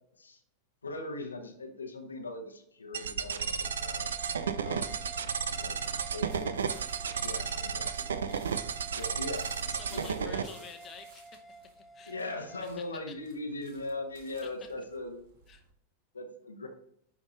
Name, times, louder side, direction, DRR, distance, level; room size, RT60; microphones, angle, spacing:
voice 1, 0.8-4.1 4.6-5.1 5.6-5.8 6.1-6.8 7.2-8.5 8.9-9.5 9.9-10.6 12.1-15.3 16.1-16.7, left 2 dB, 75° left, 4 dB, 0.9 m, -40 dB
sound 1, 2.9-10.4, right 6 dB, 65° right, 0.4 m, -33 dB
sound 2, 3.6-12.7, right 2 dB, 10° left, 0.5 m, -49 dB
sound 3, 5.8-15.7, right 3 dB, 50° right, 1.7 m, -56 dB
voice 2, 7.3-7.6 8.3-8.4 9.7-11.4 11.8-12.1 13.1-13.2 14.4-14.5 15.5-15.6, left 7 dB, 25° left, 5 dB, 1.0 m, -49 dB
10.5 x 3.6 x 3.0 m, 0.71 s
figure-of-eight pair, 90°, 0 cm